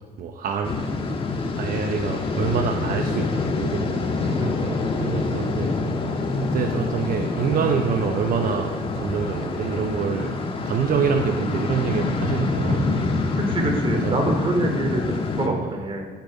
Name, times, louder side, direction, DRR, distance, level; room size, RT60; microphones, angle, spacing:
voice 1, 0.2-0.8 1.5-4.0 4.3-4.5 5.0-5.7 6.4-10.4 10.6-13.3 13.9-14.2 15.4-15.8, right 6 dB, 60° right, 5 dB, 0.9 m, -26 dB
sound 1, 0.6-15.5, left 3 dB, 30° left, 1.6 m, -26 dB
voice 2, 4.2-4.8 13.4-16.0, right 1 dB, 30° right, 4 dB, 2.7 m, -26 dB
15.5 x 8.9 x 5.4 m, 1.4 s
cardioid pair, 110°, 17 cm